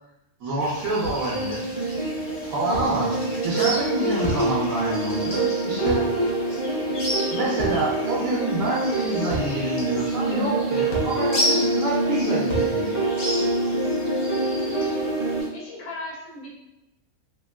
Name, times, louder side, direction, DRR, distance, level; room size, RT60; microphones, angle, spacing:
voice 1, 0.4-1.7 2.4-3.1 3.4-6.1 7.3-13.1, right 1 dB, 70° right, -7 dB, 1.0 m, -27 dB
sound 1, 0.6-15.5, left 1 dB, 45° left, 0.6 m, -34 dB
sound 2, 1.0-1.3 2.7-3.0 4.2-4.5 5.9-6.1 7.6-7.9 9.3-9.6 10.9-11.2 12.5-12.8, equal, 85° left, 1.2 m, -31 dB
sound 3, 1.3-15.4, right 2 dB, 35° right, 0.5 m, -26 dB
voice 2, 14.6-16.5, left 2 dB, 70° left, -3 dB, 1.1 m, -39 dB
3.0 x 2.7 x 2.2 m, 0.93 s
omnidirectional pair, 1.5 m